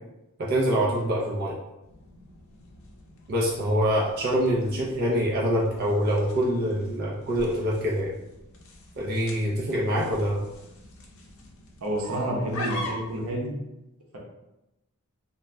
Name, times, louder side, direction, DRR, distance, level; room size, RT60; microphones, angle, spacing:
voice 1, 0.4-1.6 3.3-8.1 9.0-10.4, equal, 45° right, -5 dB, 0.5 m, -25 dB
sound 1, 1.8-13.3, left 1 dB, 70° left, 0.5 m, -43 dB
voice 2, 11.8-13.5, right 1 dB, 85° right, -2 dB, 0.8 m, -29 dB
2.6 x 2.2 x 3.2 m, 0.93 s
head